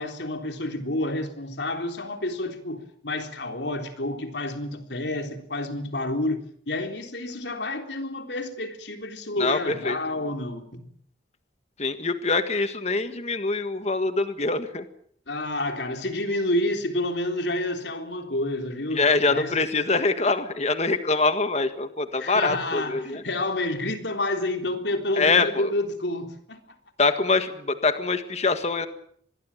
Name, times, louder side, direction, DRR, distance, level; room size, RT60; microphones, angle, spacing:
voice 1, 0.0-10.9 15.3-19.0 19.3-19.5 22.2-26.6, left 1 dB, 70° left, 3.7 m, -29 dB
voice 2, 9.4-10.0 11.8-14.8 18.9-23.2 25.2-25.7 27.0-28.9, left 3 dB, 35° left, 1.7 m, -24 dB
25.0 x 21.5 x 7.4 m
head